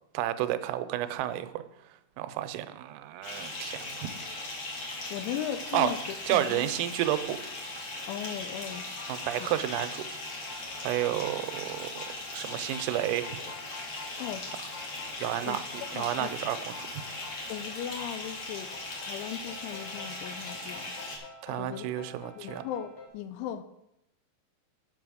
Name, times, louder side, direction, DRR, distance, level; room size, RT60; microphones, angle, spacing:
voice 1, 0.1-1.6 2.2-4.1 5.7-5.9 6.3-7.4 9.1-10.0 10.8-12.0 12.3-13.4 15.2-15.6 16.0-17.0 21.4-22.6, right 13 dB, 90° right, 11 dB, 3.4 m, -31 dB
Bathtub (filling or washing) / Fill (with liquid), 3.2-21.2, left 2 dB, 40° left, 1.7 m, -39 dB
voice 2, 5.1-6.0 6.3-6.7 8.1-8.9 9.4-9.5 14.2-14.4 15.5-15.6 15.9-16.3 17.5-18.7 19.0-20.9 21.6-21.8 22.4-23.6, left 10 dB, 85° left, 10 dB, 2.8 m, -37 dB
sound 1, 8.7-23.1, left 5 dB, 65° left, 2.8 m, -49 dB
8.7 x 8.1 x 6.3 m, 0.84 s
omnidirectional pair, 5.8 m